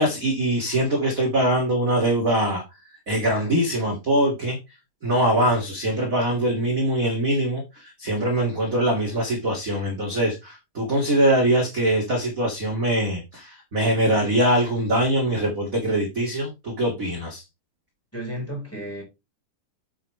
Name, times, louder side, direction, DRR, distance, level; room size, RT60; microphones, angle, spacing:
voice 1, 0.0-4.6 5.0-17.4, right 1 dB, 25° right, 2.2 m, -23 dB
voice 2, 18.1-19.0, right 1 dB, 5° left, 4.3 m, -32 dB
9.8 x 7.4 x 3.3 m
omnidirectional pair, 4.1 m